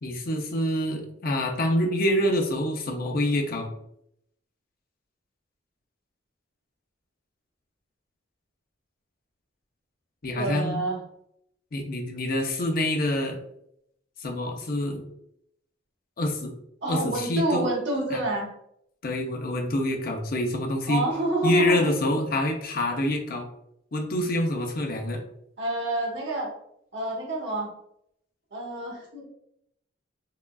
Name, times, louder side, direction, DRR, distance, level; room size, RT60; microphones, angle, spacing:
voice 1, 0.0-3.7 10.2-10.8 11.7-13.4 14.2-15.1 16.2-16.6 16.9-17.7 18.1-18.2 19.0-21.0 21.4-23.5 23.9-25.2, left 1 dB, 50° left, 3 dB, 0.6 m, -26 dB
voice 2, 10.3-11.0 16.8-18.5 20.9-21.9 25.6-26.5 26.9-27.7 28.5-29.2, right 2 dB, 65° right, -3 dB, 1.2 m, -28 dB
4.8 x 2.3 x 2.3 m, 0.76 s
head